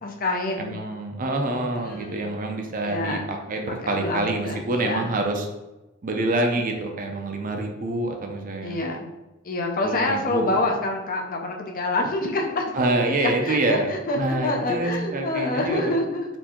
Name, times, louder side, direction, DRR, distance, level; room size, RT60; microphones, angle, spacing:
voice 1, 0.0-0.7 1.9-2.3 2.8-3.2 3.8-5.1 8.6-9.1 9.4-12.6 13.1-16.3, left 2 dB, 40° left, 1 dB, 0.6 m, -27 dB
voice 2, 0.6-5.5 6.0-8.8 9.8-10.6 12.7-13.9 14.2-16.0, right 2 dB, 40° right, 3 dB, 0.6 m, -26 dB
4.4 x 2.7 x 4.3 m, 1.0 s
head